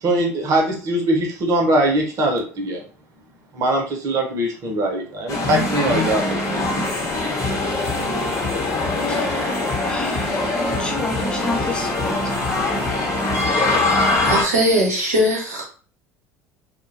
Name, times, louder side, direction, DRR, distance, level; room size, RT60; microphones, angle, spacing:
voice 1, 0.0-2.8 3.5-6.7, right 1 dB, 45° right, 0.8 m, -21 dB
sound 1, 5.3-14.4, left 2 dB, 40° left, 0.9 m, -22 dB
voice 2, 9.1-10.3 10.8-12.2, left 2 dB, 10° left, 0.6 m, -30 dB
voice 3, 13.2-15.6, equal, 75° right, 0.8 m, -22 dB
2.6 x 2.2 x 2.6 m
figure-of-eight pair, 65°, 8 cm